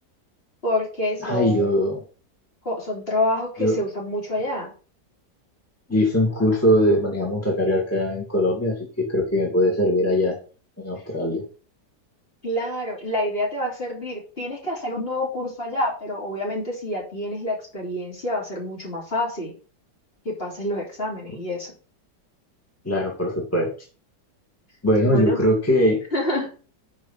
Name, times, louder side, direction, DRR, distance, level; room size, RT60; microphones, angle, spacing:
voice 1, 0.6-1.8 2.7-4.7 12.4-19.5 20.3-21.7 25.0-25.5 26.1-26.5, left 1 dB, 35° left, -2 dB, 3.5 m, -27 dB
voice 2, 1.2-2.0 3.6-3.7 5.9-10.4 10.8-11.4 22.8-23.7 24.8-26.0, equal, 10° left, -1 dB, 2.2 m, -21 dB
9.4 x 5.2 x 5.6 m, 0.38 s
omnidirectional pair, 1.8 m